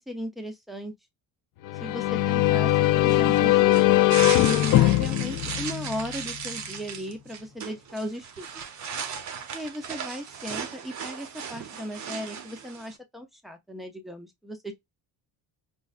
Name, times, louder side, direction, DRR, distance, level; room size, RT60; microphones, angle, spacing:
voice 1, 0.1-0.9 1.8-3.9 4.4-8.6 9.5-14.7, equal, ahead, 0.5 m, -37 dB
sound 1, 1.7-6.4, left 15 dB, 50° left, 0.5 m, -21 dB
sound 2, 3.1-13.0, right 7 dB, 45° right, 0.6 m, -36 dB
5.3 x 2.2 x 2.4 m
cardioid pair, 175°, 42 cm